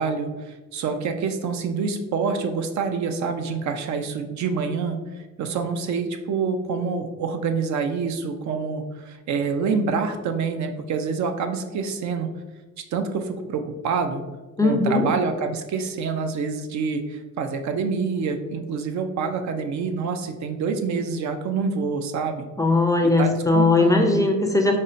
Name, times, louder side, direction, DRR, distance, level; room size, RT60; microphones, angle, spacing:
voice 1, 0.0-5.0 5.4-12.3 12.9-14.2 14.6-22.4 23.0-24.1, right 5 dB, 70° right, 6 dB, 0.5 m, -27 dB
voice 2, 14.6-15.1 22.6-24.8, left 2 dB, 10° left, 2 dB, 0.4 m, -19 dB
5.2 x 2.1 x 2.6 m, 1.2 s
cardioid pair, 90°, 30 cm